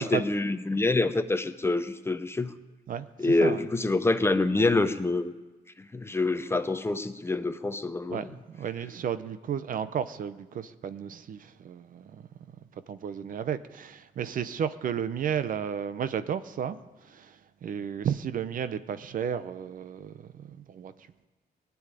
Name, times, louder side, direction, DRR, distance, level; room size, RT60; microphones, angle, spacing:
voice 1, 0.0-2.6 3.2-5.3 5.8-8.3, left 2 dB, 15° left, 0.7 m, -26 dB
voice 2, 2.9-3.6 8.1-12.2 12.9-20.9, right 8 dB, 55° right, 0.7 m, -33 dB
19.5 x 7.1 x 9.9 m
cardioid pair, 120°, 17 cm